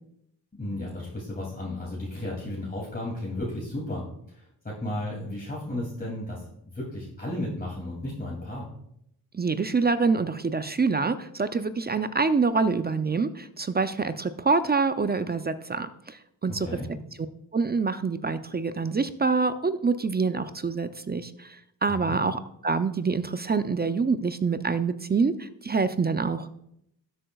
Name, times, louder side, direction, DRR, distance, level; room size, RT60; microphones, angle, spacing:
voice 1, 0.6-8.7 16.6-16.9 21.9-22.2, left 1 dB, 20° left, -5 dB, 2.6 m, -34 dB
voice 2, 9.3-16.7 17.5-26.5, right 4 dB, 25° right, 11 dB, 0.4 m, -26 dB
13.0 x 7.8 x 2.3 m, 0.76 s
cardioid pair, 70°, 40 cm